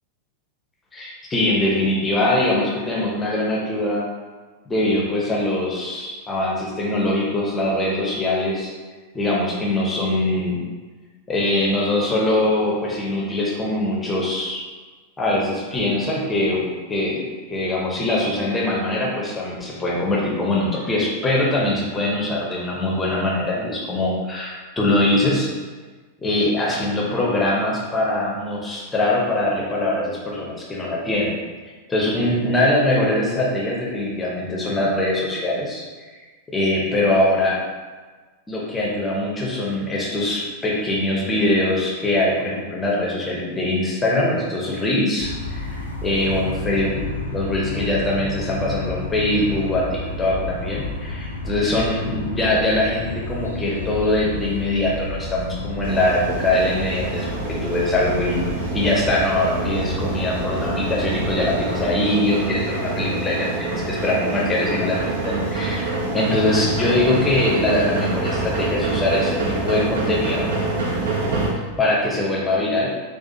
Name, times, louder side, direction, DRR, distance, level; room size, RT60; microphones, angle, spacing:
voice 1, 0.9-4.1 4.7-8.7 9.1-10.6 11.3-14.6 15.2-25.5 26.2-31.3 31.9-35.8 36.5-37.6 38.5-45.7 46.0-58.4 58.7-65.0 65.2-65.9 66.1-70.4 71.8-72.9, left 1 dB, 15° left, -4 dB, 0.7 m, -22 dB
sound 1, 45.2-62.0, left 2 dB, 80° left, 0.4 m, -31 dB
sound 2, 55.8-71.5, right 3 dB, 60° right, 0.6 m, -26 dB
4.2 x 2.4 x 2.7 m, 1.4 s
figure-of-eight pair, 90°, 0 cm